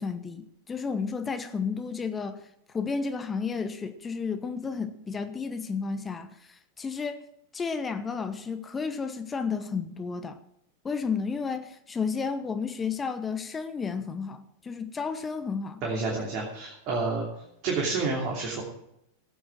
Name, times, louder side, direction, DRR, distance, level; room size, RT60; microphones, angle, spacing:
voice 1, 0.0-2.4 2.7-7.2 7.5-10.4 10.8-15.8, left 5 dB, 15° left, 1.0 m, -32 dB
voice 2, 15.8-17.3 17.6-18.6, right 3 dB, 40° right, 3.0 m, -29 dB
15.0 x 9.3 x 6.1 m
figure-of-eight pair, 90°, 0 cm